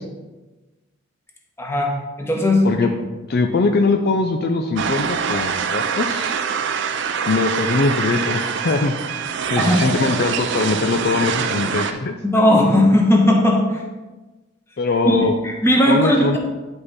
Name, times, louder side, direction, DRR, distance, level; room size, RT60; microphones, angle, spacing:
voice 1, 1.6-2.7 9.6-9.9 12.2-13.8 15.0-16.4, left 1 dB, 15° left, 0 dB, 1.3 m, -17 dB
voice 2, 3.3-6.3 7.3-12.2 14.8-15.3 15.9-16.4, left 3 dB, 50° left, 5 dB, 0.5 m, -21 dB
sound 1, 4.8-11.9, right 6 dB, 60° right, 0.5 m, -24 dB
9.8 x 5.5 x 4.1 m, 1.2 s
head